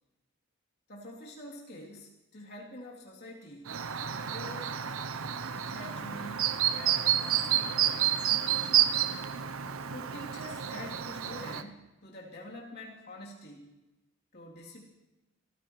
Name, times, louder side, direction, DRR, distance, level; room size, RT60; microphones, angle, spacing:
voice 1, 0.9-3.7 4.1-4.7 5.5-8.8 9.9-13.7 14.3-14.9, left 1 dB, 50° left, -3 dB, 3.0 m, -46 dB
Chirp tweet, 3.7-11.6, right 10 dB, 80° right, 0.7 m, -30 dB
28.5 x 14.0 x 3.1 m, 1.0 s
head